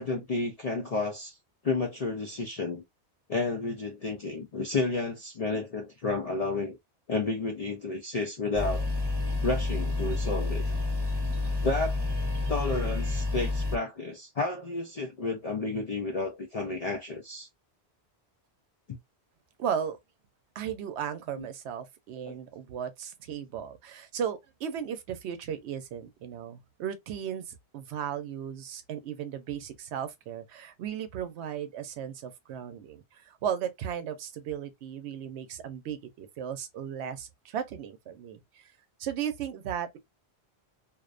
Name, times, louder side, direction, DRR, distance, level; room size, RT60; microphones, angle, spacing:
voice 1, 0.0-1.4 1.6-2.8 3.3-6.8 7.1-8.9 9.4-10.7 11.6-12.0 12.5-17.5 21.4-21.5, left 3 dB, 60° left, 0.4 m, -31 dB
sound 1, 8.5-13.8, left 2 dB, 30° right, 0.5 m, -29 dB
voice 2, 19.6-20.0 20.5-38.7 39.0-40.0, right 8 dB, 80° right, 0.9 m, -36 dB
2.4 x 2.1 x 2.4 m
omnidirectional pair, 1.1 m